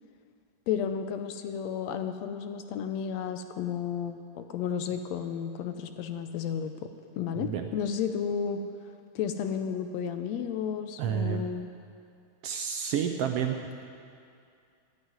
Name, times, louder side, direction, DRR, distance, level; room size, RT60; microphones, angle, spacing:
voice 1, 0.7-6.9 7.2-8.6 9.2-11.7, left 7 dB, 75° left, 8 dB, 1.8 m, -32 dB
voice 2, 7.4-7.7 11.0-11.4 12.4-13.8, right 8 dB, 70° right, 4 dB, 1.5 m, -30 dB
13.0 x 9.6 x 9.5 m, 2.4 s
omnidirectional pair, 3.3 m